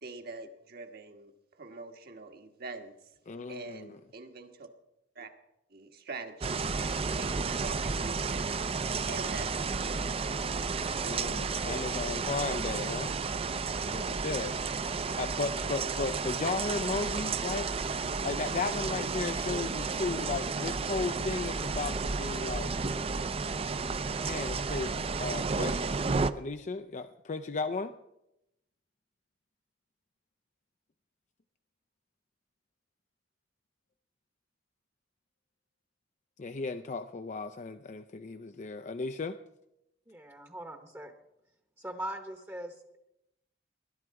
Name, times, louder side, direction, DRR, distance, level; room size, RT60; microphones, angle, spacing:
voice 1, 0.0-2.9 3.5-4.7 5.1-5.3 5.7-8.5 9.1-11.1, right 3 dB, 55° right, 5 dB, 1.4 m, -45 dB
voice 2, 3.3-4.0 11.0-13.2 13.8-14.6 14.9-17.7 18.2-22.7 23.9-26.0 26.3-27.9 36.4-39.4, left 4 dB, 40° left, 9 dB, 0.5 m, -35 dB
sound 1, 6.4-26.3, right 4 dB, 30° right, 0.5 m, -32 dB
voice 3, 40.1-41.1 41.8-43.0, right 1 dB, 15° right, 6 dB, 1.0 m, -41 dB
20.0 x 11.0 x 4.7 m, 0.86 s
head